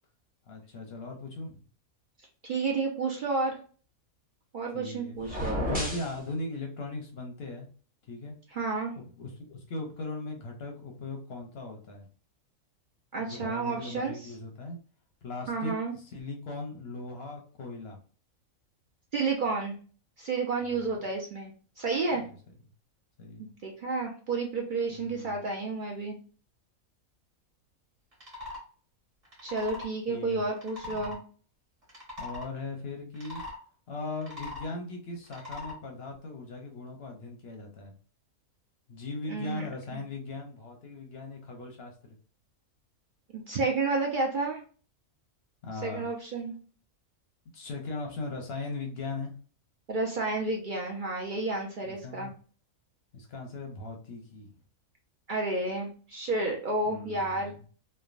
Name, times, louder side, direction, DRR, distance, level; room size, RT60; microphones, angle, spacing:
voice 1, 0.5-1.6 4.7-5.2 5.6-7.7 8.1-8.4 9.0-12.1 13.2-14.8 15.2-18.0 20.7-20.8 22.1-22.2 23.2-23.5 24.9-25.4 30.1-30.4 30.9-31.1 32.2-33.4 33.9-37.9 38.9-42.2 45.6-46.1 47.5-49.3 51.8-52.3 53.1-54.5 56.9-57.6, left 2 dB, 60° left, 2 dB, 0.7 m, -39 dB
voice 2, 2.4-3.6 4.5-5.6 8.5-8.9 13.1-14.3 15.5-15.9 19.1-19.7 20.2-21.5 21.8-22.2 23.4-26.2 29.4-31.2 39.3-39.7 39.9-40.0 43.3-44.6 45.8-46.5 49.9-52.3 55.3-57.5, right 3 dB, 70° right, 0 dB, 0.4 m, -31 dB
sound 1, 5.2-6.1, equal, 10° right, 0.6 m, -31 dB
sound 2, 28.1-28.6 29.3-29.9 30.6-31.2 31.8-32.5 33.1-33.6 34.1-34.7 35.3-35.8, left 2 dB, 45° right, 1.4 m, -41 dB
3.2 x 2.1 x 2.4 m, 0.40 s
omnidirectional pair, 1.5 m